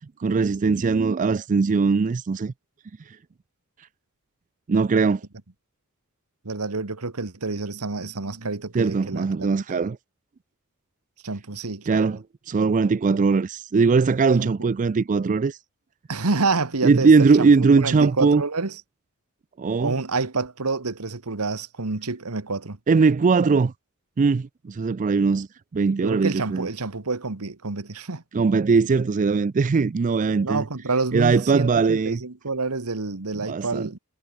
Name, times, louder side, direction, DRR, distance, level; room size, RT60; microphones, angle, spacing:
voice 1, 0.2-2.5 4.7-5.2 8.7-10.0 11.9-12.2 12.5-15.6 16.8-18.4 19.6-19.9 22.9-23.7 24.2-25.5 25.7-26.7 28.3-30.6 31.1-32.2 33.4-34.0, right 4 dB, 35° right, 0.4 m, -20 dB
voice 2, 6.4-9.5 11.2-12.2 14.4-14.7 16.1-17.5 17.8-18.8 19.8-22.8 26.0-28.2 30.4-34.0, right 3 dB, 85° right, 1.5 m, -28 dB
head